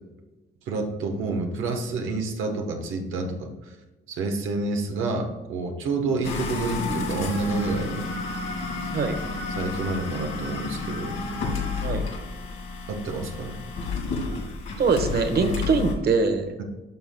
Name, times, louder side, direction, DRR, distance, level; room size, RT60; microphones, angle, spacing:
voice 1, 0.7-3.7 4.1-8.1 9.5-11.2 12.9-13.6 16.6-16.7, right 3 dB, 85° right, 3 dB, 1.1 m, -29 dB
sound 1, 6.2-15.9, left 4 dB, 80° left, 1.8 m, -31 dB
voice 2, 14.8-16.5, right 4 dB, 55° right, 7 dB, 1.1 m, -23 dB
11.5 x 5.7 x 2.2 m, 1.2 s
cardioid pair, 90°, 20 cm